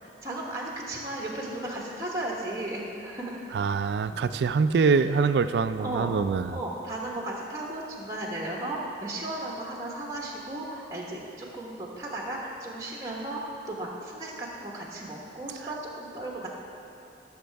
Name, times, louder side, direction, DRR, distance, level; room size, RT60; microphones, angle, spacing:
voice 1, 0.0-3.4 4.8-5.0 5.8-6.1 6.5-16.5, right 1 dB, 20° right, -3 dB, 1.2 m, -35 dB
voice 2, 3.5-6.6, right 5 dB, 75° right, 12 dB, 0.3 m, -24 dB
16.0 x 6.5 x 3.4 m, 2.7 s
head